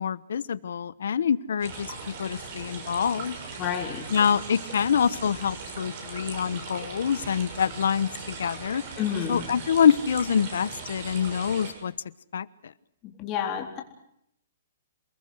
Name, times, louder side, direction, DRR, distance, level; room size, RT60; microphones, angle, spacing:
voice 1, 0.0-1.9 2.2-3.4 4.1-8.8 9.3-11.9 12.3-12.5, left 7 dB, 75° left, 18 dB, 1.1 m, -25 dB
sound 1, 1.6-11.7, right 4 dB, 35° right, 6.7 m, -39 dB
voice 2, 3.6-4.0 9.0-9.4 13.0-13.8, left 9 dB, 20° left, 2 dB, 3.9 m, -30 dB
28.5 x 21.0 x 6.4 m, 0.74 s
hypercardioid pair, 170°, 0 cm